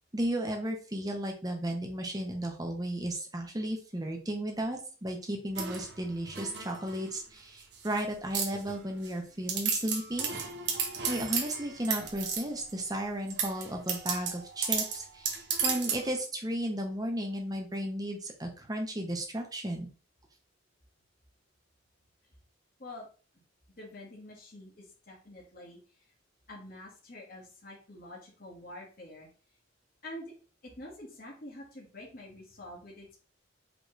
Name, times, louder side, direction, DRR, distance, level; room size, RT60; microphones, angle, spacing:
voice 1, 0.1-10.3 11.1-19.9, right 1 dB, 20° right, 2 dB, 0.9 m, -34 dB
sound 1, 5.6-7.1 7.6-8.0 8.3-9.1 9.5-12.7 13.3-16.1, right 6 dB, 60° right, 1.0 m, -34 dB
voice 2, 23.8-26.1 26.5-29.3 30.0-30.3 30.6-33.1, left 1 dB, 50° left, -4 dB, 1.4 m, -47 dB
5.1 x 3.2 x 3.1 m, 0.37 s
head